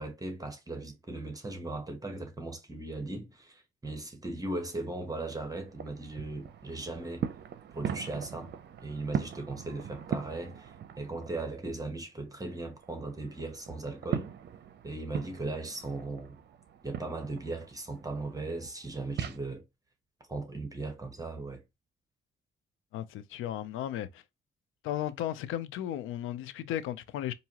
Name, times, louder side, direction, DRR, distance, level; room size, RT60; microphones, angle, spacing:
voice 1, 0.0-7.3 7.7-8.5 8.8-14.3 14.8-16.4 16.8-19.6 20.3-21.6, right 2 dB, 20° right, 1.3 m, -38 dB
sound 1, 4.7-11.6 11.9-19.4, right 8 dB, 60° right, 0.6 m, -40 dB
voice 2, 22.9-24.2 24.8-27.3, left 11 dB, 90° left, 0.5 m, -35 dB
4.7 x 2.7 x 2.9 m
cardioid pair, 90°, 20 cm